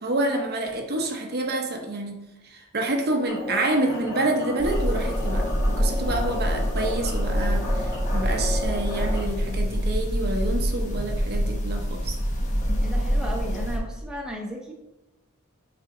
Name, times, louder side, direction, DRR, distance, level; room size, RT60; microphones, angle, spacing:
voice 1, 0.0-2.2 2.4-12.2, right 2 dB, 50° right, 3 dB, 0.8 m, -28 dB
sound 1, 3.3-9.2, left 2 dB, 55° left, 2.3 m, -34 dB
sound 2, 4.6-13.8, equal, 35° left, 1.0 m, -25 dB
voice 2, 12.8-14.7, right 1 dB, 5° right, -1 dB, 0.8 m, -35 dB
6.8 x 4.0 x 3.8 m, 0.98 s
head